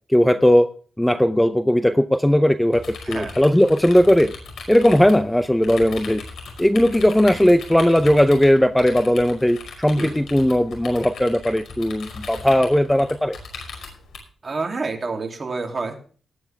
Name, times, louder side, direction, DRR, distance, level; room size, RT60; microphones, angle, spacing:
voice 1, 0.1-0.7 1.0-4.3 4.7-6.2 6.6-13.4, left 1 dB, 5° left, 11 dB, 0.6 m, -17 dB
sound 1, 2.7-14.2, left 4 dB, 90° left, 5.4 m, -38 dB
voice 2, 3.0-3.4 10.0-10.2 14.4-16.0, right 3 dB, 30° right, 2 dB, 2.9 m, -28 dB
19.0 x 9.6 x 3.5 m, 0.42 s
wide cardioid pair, 150°, 0 cm